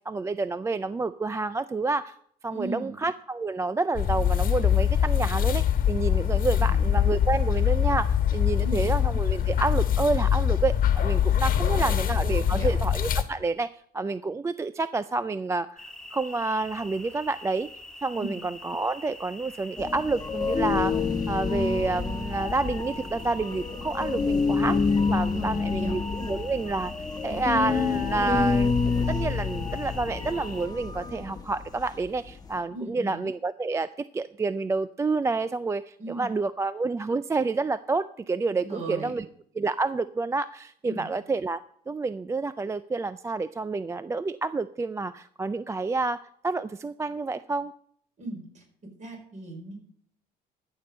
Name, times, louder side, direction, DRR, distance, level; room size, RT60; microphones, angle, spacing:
voice 1, 0.1-2.2 2.4-15.9 16.1-17.7 18.0-24.8 25.1-26.9 27.2-39.3 39.5-41.6 41.9-47.7, right 3 dB, 15° right, 14 dB, 0.3 m, -29 dB
voice 2, 2.5-2.9 6.7-6.8 8.6-8.9 11.5-11.9 12.3-12.7 18.2-18.4 25.3-25.9 32.7-33.2 36.0-36.3 38.6-39.2 40.8-41.1 48.2-48.6 49.0-49.8, right 2 dB, 45° right, 1 dB, 5.2 m, -37 dB
sound 1, 3.9-13.2, left 9 dB, 55° left, 1.3 m, -23 dB
sound 2, 15.8-30.7, left 2 dB, 5° left, 1.4 m, -45 dB
sound 3, 19.8-32.6, left 5 dB, 20° left, 1.2 m, -28 dB
13.5 x 6.9 x 5.3 m, 0.64 s
cardioid pair, 110°, 17 cm